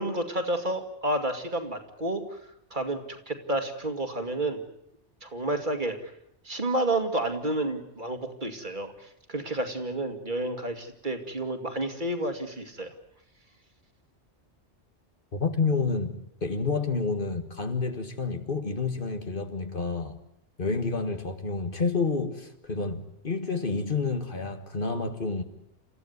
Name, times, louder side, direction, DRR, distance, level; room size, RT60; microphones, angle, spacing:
voice 1, 0.0-2.4 2.7-4.6 5.2-6.1 6.4-12.9, right 1 dB, 45° right, 2.5 m, -30 dB
voice 2, 15.3-20.2 20.6-25.4, left 4 dB, 50° left, 1.8 m, -29 dB
29.5 x 15.0 x 9.5 m
omnidirectional pair, 1.2 m